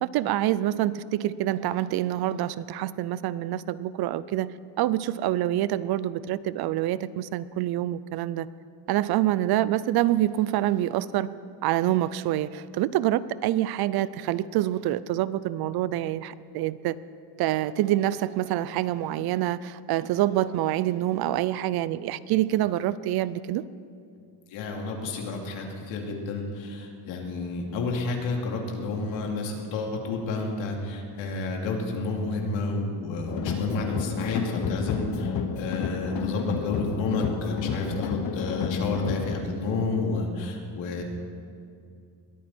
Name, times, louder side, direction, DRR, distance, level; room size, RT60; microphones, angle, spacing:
voice 1, 0.0-8.5 8.9-11.3 11.6-17.0 17.4-23.6, right 13 dB, 55° right, 17 dB, 0.5 m, -26 dB
voice 2, 24.5-41.0, left 3 dB, 80° left, 1 dB, 2.7 m, -30 dB
sound 1, 33.3-39.3, left 6 dB, 50° left, 1.1 m, -30 dB
21.5 x 14.0 x 4.4 m, 2.5 s
cardioid pair, 175°, 45 cm